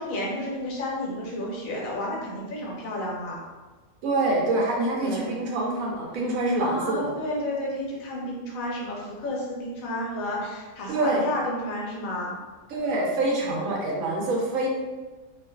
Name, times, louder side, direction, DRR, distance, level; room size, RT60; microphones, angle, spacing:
voice 1, 0.0-3.4 5.0-5.4 6.6-12.4, left 1 dB, 75° left, -3 dB, 1.1 m, -31 dB
voice 2, 4.0-7.1 10.9-11.3 12.7-14.7, right 2 dB, 75° right, -2 dB, 0.9 m, -25 dB
2.5 x 2.4 x 2.2 m, 1.2 s
omnidirectional pair, 1.5 m